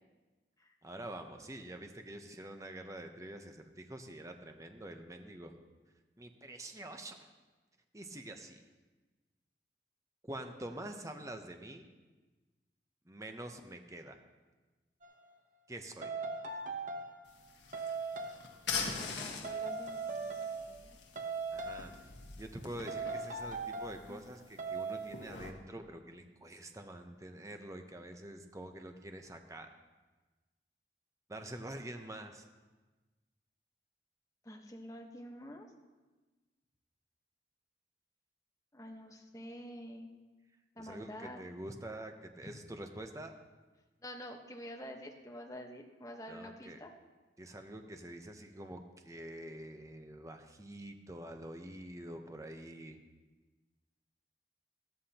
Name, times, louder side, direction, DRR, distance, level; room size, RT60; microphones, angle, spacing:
voice 1, 0.8-5.5 6.2-7.3 7.9-8.6 10.3-11.9 13.1-14.2 15.7-16.1 21.5-21.9 22.4-29.7 31.3-32.5 40.8-43.3 46.3-46.8 47.4-53.0, right 1 dB, 20° right, 5 dB, 0.8 m, -46 dB
sound 1, 15.0-15.2 16.0-17.3 17.7-18.5 19.4-20.9 21.2-22.1 22.9-24.1 24.6-25.2, right 4 dB, 45° right, 0.9 m, -39 dB
sound 2, 17.3-25.5, left 5 dB, 85° left, 1.5 m, -44 dB
voice 2, 18.7-21.0 24.1-24.2 34.4-35.7 38.7-40.1 40.8-41.4 42.4-42.5 44.0-46.9, equal, 20° left, 2 dB, 1.2 m, -48 dB
15.0 x 13.0 x 2.9 m, 1.2 s
head